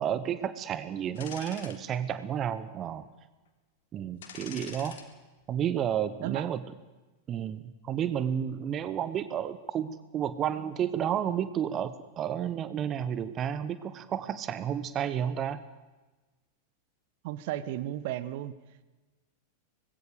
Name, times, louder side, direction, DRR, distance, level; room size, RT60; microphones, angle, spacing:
voice 1, 0.0-3.1 3.9-5.0 5.5-6.6 7.3-15.6, right 9 dB, 30° right, 14 dB, 1.2 m, -31 dB
sound 1, 1.2-1.8 2.3-2.4 4.2-5.0 5.4-5.6, left 7 dB, 60° left, 2.9 m, -44 dB
voice 2, 17.2-18.5, right 13 dB, 50° right, 15 dB, 1.3 m, -34 dB
25.0 x 21.0 x 7.0 m, 1.2 s
figure-of-eight pair, 90°, 0 cm